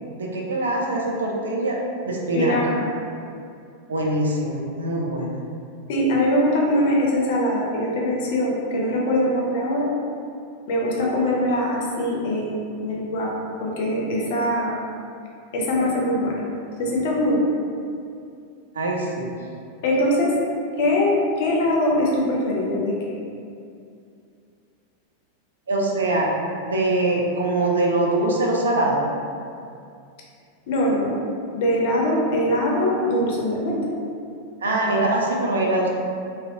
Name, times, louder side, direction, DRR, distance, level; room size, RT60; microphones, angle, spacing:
voice 1, 0.2-1.8 2.0-2.6 3.9-5.4 18.7-19.3 25.7-26.3 26.6-29.0 34.6-35.9, right 2 dB, 70° right, -1 dB, 0.4 m, -23 dB
voice 2, 2.3-2.8 5.9-9.9 10.7-13.3 13.6-14.8 15.5-16.3 16.8-17.4 19.8-20.4 20.8-23.0 30.7-31.2 31.5-33.8, left 1 dB, 50° left, -2 dB, 0.5 m, -22 dB
2.5 x 2.1 x 2.5 m, 2.4 s
figure-of-eight pair, 90°, 0 cm